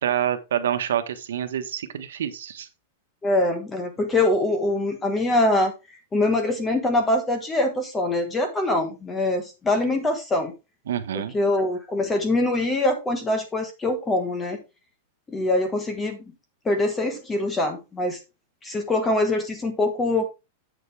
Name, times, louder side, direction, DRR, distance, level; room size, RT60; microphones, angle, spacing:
voice 1, 0.0-2.7 10.9-11.4, right 10 dB, 90° right, 8 dB, 1.2 m, -27 dB
voice 2, 3.2-5.7 6.1-10.5 11.1-14.6 15.3-16.2 16.6-18.2 18.6-20.3, left 2 dB, 10° left, 6 dB, 1.3 m, -23 dB
7.9 x 6.7 x 3.3 m, 0.26 s
supercardioid pair, 175°, 0 cm